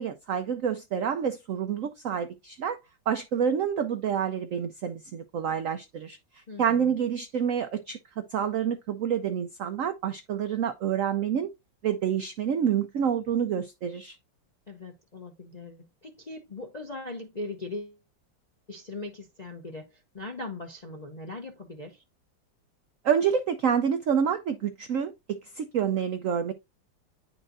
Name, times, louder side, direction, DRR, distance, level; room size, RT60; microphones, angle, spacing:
voice 1, 0.0-2.8 3.1-6.2 6.6-11.5 11.8-14.2 23.0-26.5, right 8 dB, 80° right, 0.7 m, -28 dB
voice 2, 6.5-6.9 14.7-18.0 18.7-22.0, left 2 dB, 45° left, 0.5 m, -40 dB
10.0 x 4.3 x 2.6 m
omnidirectional pair, 2.1 m